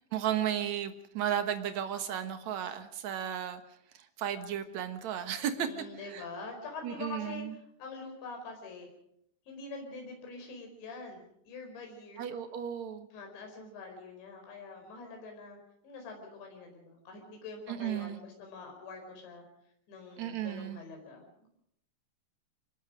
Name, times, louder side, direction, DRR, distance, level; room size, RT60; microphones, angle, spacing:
voice 1, 0.1-3.6 3.9-5.7 6.0-6.2 6.8-7.5 12.2-13.1 17.7-18.2 20.2-20.8, right 10 dB, 70° right, 8 dB, 1.7 m, -34 dB
voice 2, 5.6-7.5 7.8-8.9 9.5-12.3 13.1-19.4 19.9-21.5, left 3 dB, 75° left, 2 dB, 7.0 m, -45 dB
25.5 x 20.5 x 5.1 m, 0.73 s
omnidirectional pair, 5.2 m